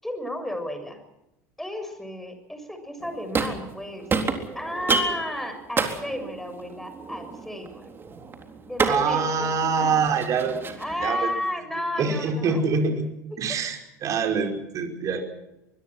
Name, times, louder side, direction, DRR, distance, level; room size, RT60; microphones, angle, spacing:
voice 1, 0.0-1.0 1.6-4.1 4.6-7.9 8.6-9.5 10.8-12.6 13.3-13.4 15.1-15.2, left 1 dB, 5° left, 7 dB, 7.1 m, -33 dB
sound 1, 3.0-3.8 4.1-11.1, right 4 dB, 25° right, 3.9 m, -30 dB
voice 2, 8.9-11.3 12.0-13.0 13.4-15.2, right 5 dB, 40° right, 4 dB, 5.1 m, -25 dB
24.0 x 23.0 x 6.1 m, 0.88 s
hypercardioid pair, 75°, 8 cm